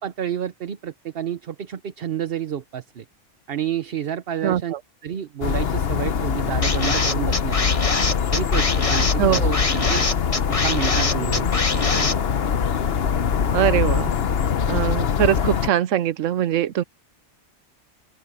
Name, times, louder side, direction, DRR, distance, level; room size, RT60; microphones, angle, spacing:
voice 1, 0.0-3.0 3.5-4.7 5.0-7.8 8.3-10.2 10.5-12.2, right 9 dB, 55° right, 1.0 m, -30 dB
voice 2, 4.4-4.8 9.2-9.6 13.5-14.1 14.7-16.8, right 11 dB, 85° right, 1.1 m, -22 dB
sound 1, 5.4-15.7, left 7 dB, 55° left, 1.0 m, -23 dB
sound 2, 6.6-12.1, left 3 dB, 30° left, 1.3 m, -24 dB
open air
omnidirectional pair, 1.3 m